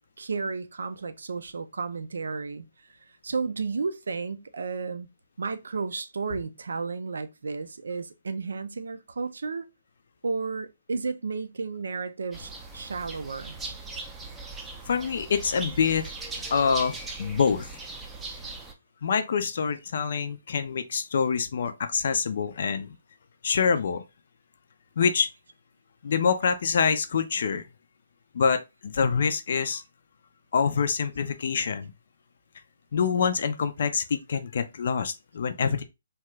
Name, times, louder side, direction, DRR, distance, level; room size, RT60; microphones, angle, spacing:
voice 1, 0.2-2.7 3.2-5.1 5.4-9.7 10.2-13.6, right 4 dB, 80° right, 0.4 m, -32 dB
sound 1, 12.3-18.7, right 3 dB, 10° right, 0.5 m, -39 dB
voice 2, 14.9-16.0 16.5-17.7 19.0-22.9 23.4-24.0 25.0-25.3 26.0-27.6 28.3-29.8 30.5-31.9 32.9-35.8, left 6 dB, 60° left, 0.4 m, -26 dB
2.8 x 2.3 x 3.1 m
hypercardioid pair, 155°, 0 cm